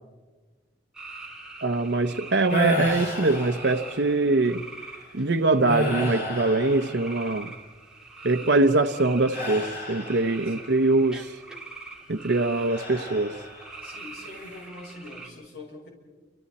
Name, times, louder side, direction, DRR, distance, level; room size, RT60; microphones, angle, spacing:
sound 1, 0.9-15.3, right 3 dB, 5° right, 2.6 m, -43 dB
voice 1, 1.6-4.6 5.1-7.5 8.2-11.3 12.1-13.3, right 2 dB, 85° right, 8 dB, 0.8 m, -23 dB
sound 2, 2.5-4.2 4.8-5.0 5.6-7.5 9.3-10.6 12.7-13.8 14.2-14.7, equal, 90° left, 7.4 m, -32 dB
voice 2, 13.8-15.9, left 2 dB, 65° left, -2 dB, 6.5 m, -43 dB
29.0 x 27.0 x 4.2 m, 1.3 s
head